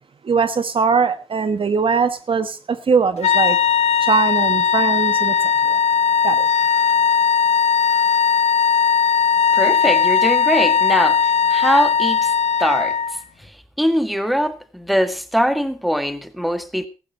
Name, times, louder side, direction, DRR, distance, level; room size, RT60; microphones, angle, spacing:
voice 1, 0.2-3.6 4.0-5.3 5.7-5.8 6.2-6.5, right 5 dB, 55° right, 1.2 m, -20 dB
sound 1, 3.2-13.2, left 7 dB, 80° left, 1.0 m, -18 dB
voice 2, 9.5-12.3 12.6-13.0 13.8-16.9, equal, ahead, 1.8 m, -21 dB
14.5 x 12.0 x 4.1 m
cardioid pair, 55°, 11 cm